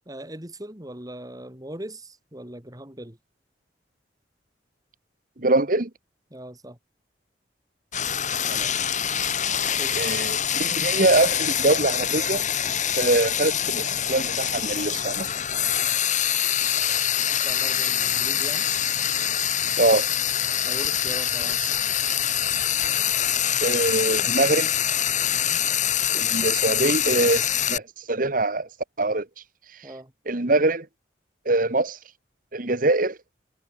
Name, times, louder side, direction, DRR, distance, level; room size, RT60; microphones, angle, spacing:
voice 1, 0.1-3.2 6.3-6.8 9.8-10.0 17.4-18.7 20.6-21.6 25.3-25.6 29.8-30.1, right 1 dB, 20° right, 3.9 m, -39 dB
voice 2, 5.4-5.9 8.4-8.7 10.0-12.4 13.0-15.3 19.8-20.1 23.6-24.7 26.1-28.7 29.0-29.3 30.3-30.9 31.4-32.0 32.5-33.2, right 2 dB, 50° right, 1.6 m, -23 dB
Frying (food), 7.9-27.8, left 10 dB, 45° left, 3.3 m, -25 dB
head